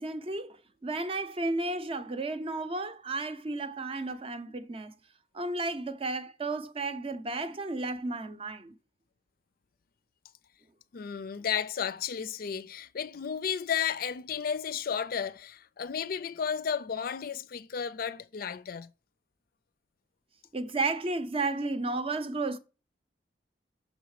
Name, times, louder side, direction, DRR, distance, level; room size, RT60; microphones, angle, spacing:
voice 1, 0.0-4.9 5.3-8.7 20.5-22.6, right 3 dB, 35° right, 0.6 m, -33 dB
voice 2, 10.9-18.9, left 7 dB, 55° left, 0.4 m, -33 dB
6.3 x 4.0 x 4.7 m
head